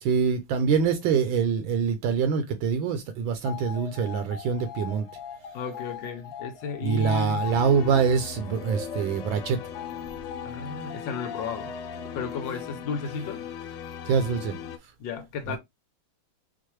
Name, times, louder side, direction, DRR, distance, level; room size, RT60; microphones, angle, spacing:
voice 1, 0.0-5.1 6.8-9.6 14.1-14.6 15.5-15.6, right 6 dB, 80° right, 1.3 m, -25 dB
sound 1, 3.4-13.2, left 6 dB, 45° left, 1.5 m, -40 dB
voice 2, 5.5-7.6 10.4-11.8 12.1-13.5 15.0-15.6, left 5 dB, 75° left, 1.2 m, -34 dB
sound 2, 7.4-14.8, left 9 dB, 90° left, 1.4 m, -39 dB
4.6 x 2.1 x 3.0 m
omnidirectional pair, 2.3 m